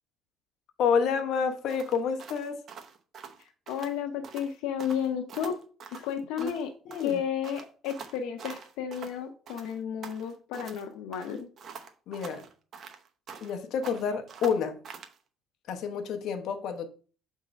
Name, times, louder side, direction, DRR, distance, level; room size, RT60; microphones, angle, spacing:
voice 1, 0.8-2.6 6.4-6.5 6.9-7.2 12.1-12.4 13.4-14.8 15.7-16.9, left 6 dB, 65° left, 0.9 m, -29 dB
sound 1, 1.7-4.0 4.2-4.5 4.8-6.7 6.9-9.2 9.5-10.8 11.1-13.6 13.8-15.2, right 6 dB, 50° right, 0.8 m, -45 dB
voice 2, 3.7-5.6 6.0-6.7 7.0-11.5, left 8 dB, 90° left, 0.7 m, -32 dB
6.4 x 3.7 x 5.1 m
cardioid pair, 120°, 0 cm